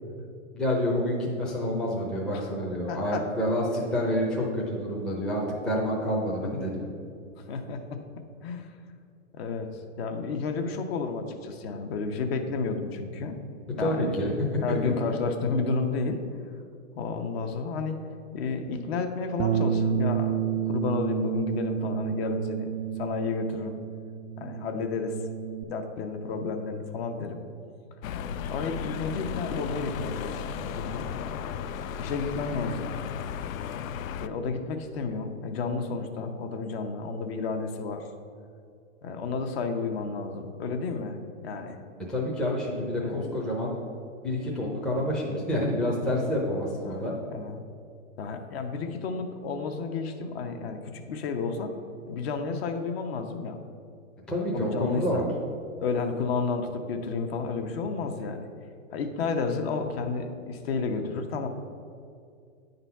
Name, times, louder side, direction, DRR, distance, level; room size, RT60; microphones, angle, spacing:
voice 1, 0.5-6.9 13.8-14.3 14.8-14.9 42.1-43.8 44.2-47.1 54.3-55.3, equal, ahead, -4 dB, 0.5 m, -28 dB
voice 2, 2.9-3.3 7.4-8.0 8.4-8.7 9.3-9.7 10.0-13.4 13.8-14.1 14.6-16.2 16.9-18.0 18.3-22.7 23.0-23.8 24.4-25.2 25.7-27.4 28.5-31.1 32.0-32.9 34.2-38.1 39.0-41.2 41.4-41.8 43.0-43.4 46.8-47.6 48.2-51.7 52.1-53.6 54.5-55.3 55.8-58.5 58.9-61.5, left 4 dB, 50° left, 6 dB, 0.8 m, -31 dB
Bass guitar, 19.4-25.6, right 9 dB, 70° right, 0.5 m, -30 dB
sound 1, 28.0-34.3, left 7 dB, 85° left, 0.5 m, -35 dB
9.0 x 4.0 x 5.6 m, 2.4 s
hypercardioid pair, 140°, 40 cm